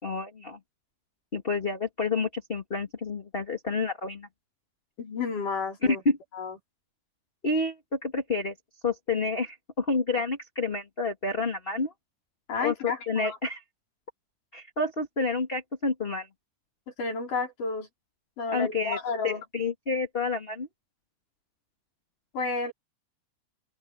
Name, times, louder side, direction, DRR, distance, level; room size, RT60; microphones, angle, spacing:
voice 1, 0.0-0.6 1.3-4.3 5.8-6.2 7.4-8.5 8.8-11.9 12.6-13.6 14.5-16.3 18.5-19.0 19.2-20.7, left 3 dB, 20° left, 2.0 m, -29 dB
voice 2, 5.0-6.0 6.3-6.6 12.5-13.4 17.0-17.9 18.4-19.4 22.3-22.7, left 4 dB, 70° left, 6.1 m, -31 dB
open air
omnidirectional pair, 3.9 m